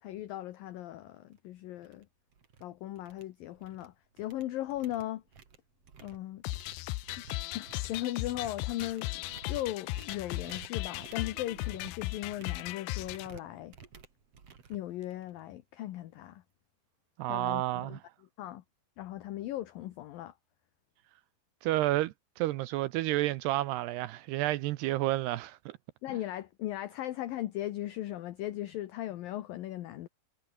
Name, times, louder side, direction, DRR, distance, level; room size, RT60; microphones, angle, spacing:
voice 1, 0.0-2.1 2.6-5.2 6.0-6.4 7.5-13.7 14.7-16.4 17.3-18.0 18.4-18.6 19.0-20.3 26.0-30.1, left 14 dB, 70° left, 2.5 m, -38 dB
sound 1, 1.3-1.4 1.8-2.0 2.3-2.6 3.0-3.9 4.2-15.4, right 6 dB, 40° right, 3.2 m, -54 dB
sound 2, 6.4-13.3, left 20 dB, 85° left, 2.7 m, -37 dB
sound 3, 9.5-12.5 13.5-13.6 14.5-15.1 15.7-15.8 16.1-16.5 17.2-17.3, right 7 dB, 60° right, 5.3 m, -62 dB
voice 2, 17.2-18.0 21.6-25.8, right 16 dB, 80° right, 2.7 m, -30 dB
omnidirectional pair, 4.9 m